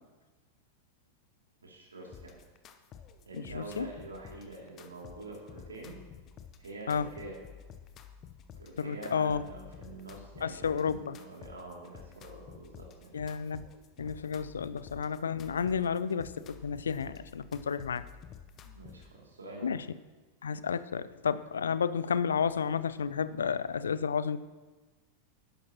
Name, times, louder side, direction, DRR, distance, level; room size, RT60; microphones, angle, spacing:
voice 1, 1.6-2.3 3.3-5.9 6.6-7.3 8.6-13.1 18.5-19.7, right 2 dB, 75° right, -1 dB, 2.6 m, -46 dB
sound 1, 2.1-19.1, left 8 dB, 30° left, 0.8 m, -51 dB
voice 2, 3.5-3.9 6.9-7.1 8.8-9.4 10.4-11.2 13.1-13.6 14.0-18.0 19.6-19.8 20.4-24.4, left 6 dB, 70° left, 16 dB, 0.5 m, -31 dB
12.5 x 11.0 x 3.0 m, 1.2 s
figure-of-eight pair, 90°, 0 cm